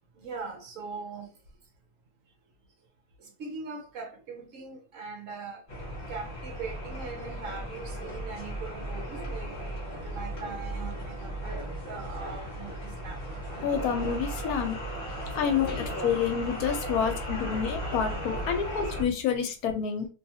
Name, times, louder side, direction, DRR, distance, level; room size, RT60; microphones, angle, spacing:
voice 1, 0.2-1.3 3.2-5.6 6.1-13.2, right 4 dB, 65° right, 0.9 m, -41 dB
sound 1, 5.7-19.0, right 1 dB, 40° left, 0.8 m, -36 dB
voice 2, 13.6-14.8 15.3-20.1, left 7 dB, 75° left, 1.0 m, -28 dB
2.7 x 2.3 x 2.7 m
omnidirectional pair, 1.6 m